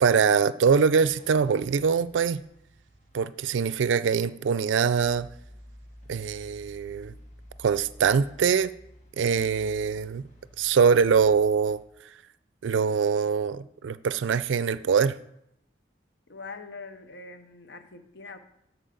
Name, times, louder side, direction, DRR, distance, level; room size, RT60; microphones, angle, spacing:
voice 1, 0.0-2.4 3.1-5.3 6.1-7.1 7.6-8.7 9.2-10.2 10.6-11.8 12.6-15.2, right 6 dB, 90° right, 16 dB, 0.4 m, -23 dB
sound 1, 0.8-11.8, equal, 40° left, 1.6 m, -52 dB
voice 2, 16.3-18.4, left 3 dB, 65° left, 9 dB, 0.8 m, -43 dB
13.0 x 4.6 x 3.8 m, 0.79 s
head